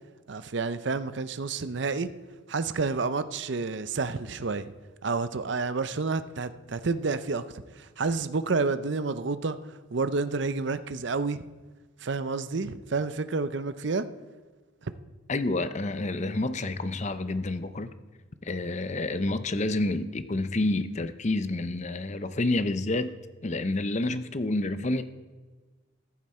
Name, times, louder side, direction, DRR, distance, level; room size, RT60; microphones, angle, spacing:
voice 1, 0.3-2.1 2.5-4.7 5.0-9.6 9.9-11.4 12.0-14.1 14.8-14.9, right 4 dB, 60° right, 0.6 m, -29 dB
voice 2, 15.3-17.9 18.4-23.1 23.4-25.0, left 2 dB, 35° left, 0.7 m, -29 dB
14.5 x 11.0 x 4.4 m
head